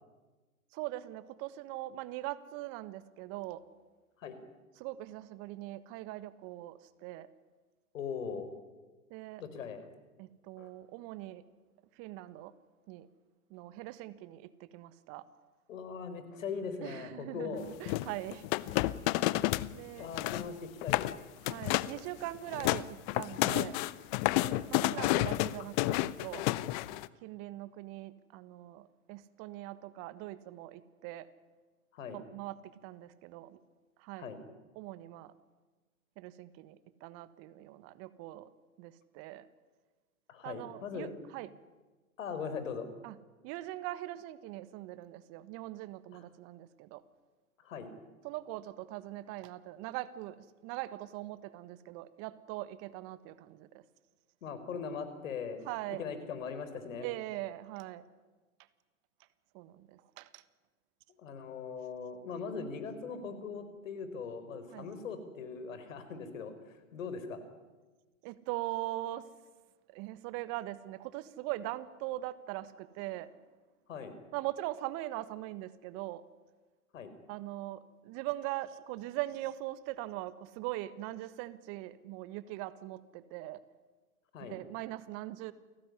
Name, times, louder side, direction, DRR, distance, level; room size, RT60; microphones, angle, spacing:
voice 1, 0.7-3.6 4.8-7.3 9.1-9.4 10.2-11.4 12.0-12.5 12.9-13.1 13.5-15.2 16.8-18.8 19.7-20.1 21.4-23.8 24.7-26.4 27.2-31.3 32.1-33.6 34.0-34.3 34.7-35.3 36.2-38.5 38.8-39.5 40.4-41.5 43.0-43.1 43.4-47.0 48.2-50.4 50.6-53.8 55.6-56.0 57.0-58.0 59.5-60.4 64.7-64.9 68.2-69.3 69.9-73.3 74.3-76.2 77.3-83.6 84.4-85.5, right 16 dB, 35° right, 15 dB, 1.4 m, -41 dB
voice 2, 7.9-8.5 9.4-9.8 10.6-10.7 15.7-17.7 20.0-21.1 24.3-24.6 31.9-32.2 34.2-34.4 40.3-41.1 42.2-42.9 46.1-46.2 47.6-47.9 54.4-57.1 61.2-67.4 73.9-74.1 76.9-77.1 84.3-84.6, left 5 dB, 60° left, 11 dB, 4.8 m, -40 dB
sound 1, 17.9-19.7 20.0-20.5 20.8-21.1 21.5-22.0 22.4-27.1, left 18 dB, 35° left, 0.9 m, -30 dB
29.0 x 18.5 x 9.8 m, 1.3 s
figure-of-eight pair, 115°, 43 cm